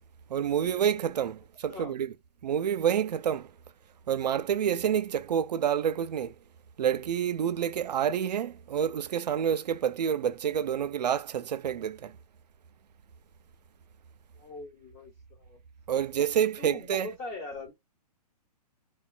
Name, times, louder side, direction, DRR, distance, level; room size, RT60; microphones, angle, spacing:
voice 1, 0.3-2.1 2.4-3.5 4.1-6.3 6.8-12.1 15.9-17.1, right 8 dB, 80° right, 0.4 m, -28 dB
voice 2, 14.3-15.6 16.6-17.7, left 3 dB, 25° left, 1.1 m, -41 dB
3.1 x 2.2 x 2.4 m
hypercardioid pair, 140°, 21 cm